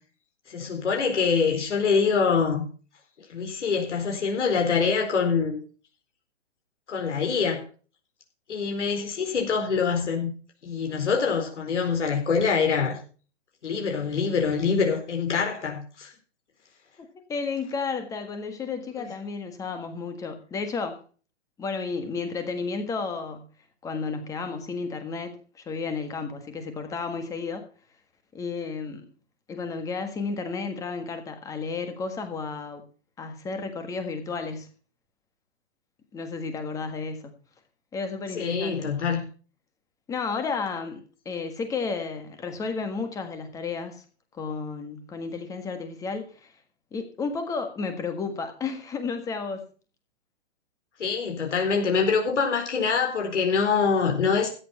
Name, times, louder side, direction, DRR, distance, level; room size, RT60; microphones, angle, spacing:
voice 1, 0.5-2.6 3.3-5.6 6.9-7.6 8.5-10.3 10.6-13.0 13.6-16.1 38.3-39.2 51.0-54.5, left 5 dB, 75° left, 4.3 m, -25 dB
voice 2, 17.3-21.0 21.6-23.4 23.8-27.7 28.3-29.1 29.5-32.8 33.2-34.7 36.1-37.3 37.9-38.9 40.1-44.0 44.3-46.5 46.9-49.6, left 4 dB, 10° left, 1.5 m, -32 dB
14.0 x 9.9 x 4.2 m
hypercardioid pair, 160°, 36 cm